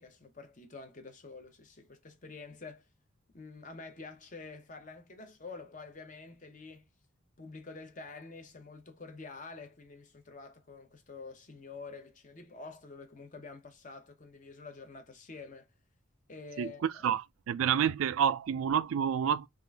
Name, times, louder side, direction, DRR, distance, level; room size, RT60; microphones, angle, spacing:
voice 1, 0.0-2.8 3.3-6.9 7.4-15.7 16.3-17.0, left 4 dB, 40° left, 0.7 m, -48 dB
voice 2, 17.0-19.5, right 8 dB, 90° right, 0.3 m, -29 dB
3.6 x 2.5 x 3.3 m
head